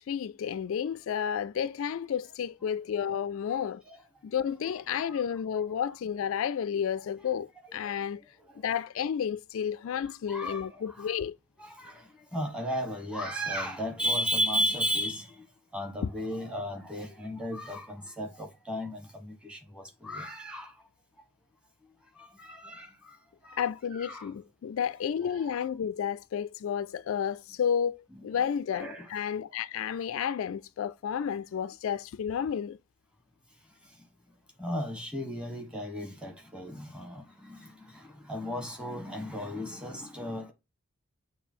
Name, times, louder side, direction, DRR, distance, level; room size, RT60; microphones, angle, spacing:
voice 1, 0.0-3.8 4.2-8.2 8.6-11.3 23.6-28.0 28.2-32.8, left 8 dB, 65° left, 0.3 m, -31 dB
voice 2, 3.5-4.0 5.0-5.2 7.8-8.6 10.0-11.2 11.6-15.5 15.7-20.9 21.2-21.3 21.8-23.2 23.4-23.6 23.9-24.3 25.3-25.6 28.1-28.2 28.7-29.1 33.6-34.1 34.6-40.5, equal, 5° right, 1.1 m, -35 dB
6.8 x 2.7 x 5.4 m
head